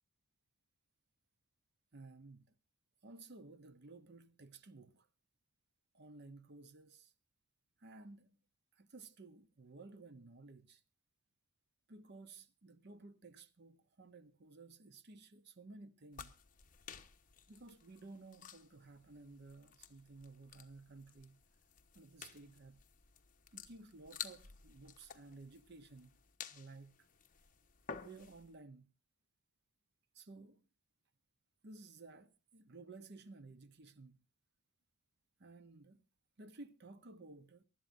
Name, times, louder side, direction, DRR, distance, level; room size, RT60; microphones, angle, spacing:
voice 1, 1.9-2.5 3.0-5.1 5.9-7.1 7.8-8.4 8.7-10.8 11.9-16.4 17.5-21.4 21.9-22.8 23.5-26.1 26.5-27.1 28.0-28.9 30.1-30.7 31.6-34.2 35.4-36.0 36.4-37.6, right 3 dB, 50° right, 0.9 m, -55 dB
sound 1, 16.1-28.5, left 7 dB, 40° left, 1.1 m, -53 dB
23.5 x 12.0 x 2.6 m
head